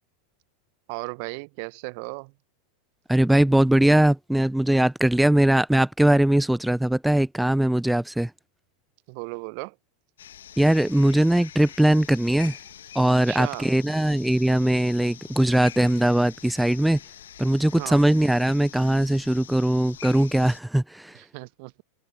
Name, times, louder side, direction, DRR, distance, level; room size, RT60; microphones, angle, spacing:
voice 1, 0.9-2.3 9.1-9.8 13.3-13.7 17.7-18.0 21.1-21.8, right 34 dB, 50° right, 1.0 m, -35 dB
voice 2, 3.1-8.3 10.6-12.6 12.9-17.0 17.4-21.2, right 1 dB, 5° right, 0.6 m, -20 dB
sound 1, 10.2-20.6, left 10 dB, 65° left, 1.6 m, -45 dB
figure-of-eight pair, 90°, 0 cm